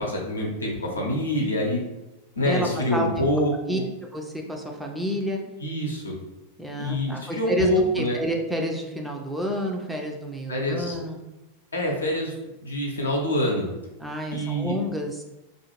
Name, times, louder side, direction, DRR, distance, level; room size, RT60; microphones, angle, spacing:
voice 1, 0.0-1.8 2.4-3.8 5.6-6.1 6.8-8.2 10.5-11.0 11.7-12.3 12.6-13.7 14.3-14.8, left 1 dB, 75° left, -2 dB, 0.7 m, -25 dB
voice 2, 2.4-3.3 3.7-3.8 4.1-5.4 6.6-11.2 14.0-15.2, equal, 5° right, 1 dB, 0.4 m, -29 dB
2.4 x 2.4 x 3.0 m, 1.0 s
figure-of-eight pair, 90°, 0 cm